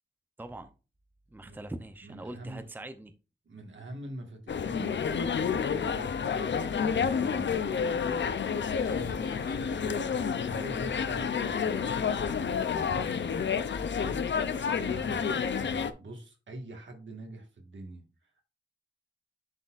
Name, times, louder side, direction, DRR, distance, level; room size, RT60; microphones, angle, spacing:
voice 1, 0.4-0.7 1.3-3.1 8.9-9.1 14.6-14.8, right 1 dB, 10° right, 9 dB, 0.6 m, -43 dB
voice 2, 2.0-2.7 3.4-4.9 5.6-8.0 8.5-12.0 14.7-18.4, right 2 dB, 80° right, 3 dB, 1.7 m, -45 dB
sound 1, 4.5-15.9, left 6 dB, 70° left, 0.6 m, -29 dB
Electric guitar, 8.5-15.0, equal, 50° left, 3.2 m, -55 dB
10.5 x 4.1 x 2.5 m, 0.31 s
wide cardioid pair, 125°, 19 cm